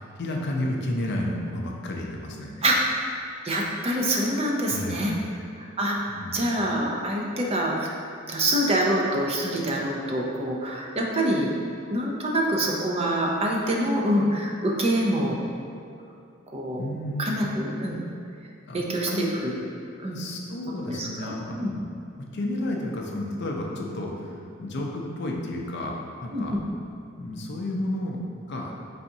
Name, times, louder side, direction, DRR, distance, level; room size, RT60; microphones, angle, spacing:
voice 1, 0.2-2.6 4.7-5.1 6.1-6.5 16.8-17.4 18.7-19.2 20.0-21.6 22.3-26.6 27.2-28.7, left 1 dB, 55° left, 0 dB, 0.5 m, -31 dB
voice 2, 2.6-3.1 3.4-5.1 5.8-7.9 8.3-11.5 11.9-15.4 16.5-16.8 17.2-18.0 18.7-19.5 20.0-20.2 20.9-21.3 21.6-21.7 26.3-26.6, right 1 dB, 30° right, -2 dB, 0.4 m, -25 dB
4.0 x 3.4 x 2.7 m, 2.5 s
head